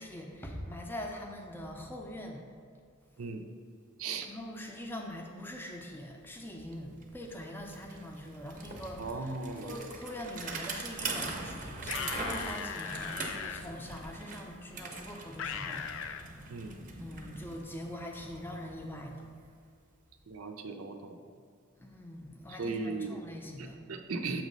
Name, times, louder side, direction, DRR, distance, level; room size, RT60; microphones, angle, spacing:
voice 1, 0.0-2.4 4.2-9.0 9.6-16.4 17.0-19.3 21.8-23.8, left 1 dB, 10° left, 2 dB, 0.5 m, -43 dB
voice 2, 4.0-4.3 9.0-9.7 16.5-16.7 20.3-21.2 22.6-23.2 23.6-24.4, right 4 dB, 80° right, 6 dB, 0.5 m, -37 dB
Bicycle, 6.2-6.3 6.6-19.5, right 3 dB, 40° right, 0.7 m, -42 dB
sound 1, 11.8-13.6 15.4-16.2, left 7 dB, 65° left, 0.3 m, -38 dB
7.2 x 3.1 x 5.3 m, 2.2 s
head